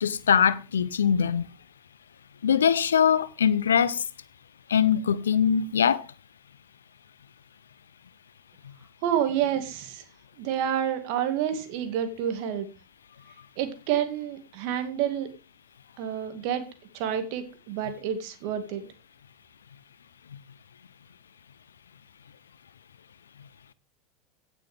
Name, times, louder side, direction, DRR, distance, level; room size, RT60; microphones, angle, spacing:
voice 1, 0.0-1.5 2.4-4.0 4.7-6.0, left 8 dB, 80° left, 0.6 m, -22 dB
voice 2, 9.0-10.0 10.4-12.7 13.6-15.3 16.0-16.6 16.9-18.9, right 9 dB, 60° right, 2.1 m, -29 dB
16.0 x 6.3 x 3.5 m
hypercardioid pair, 80°, 0 cm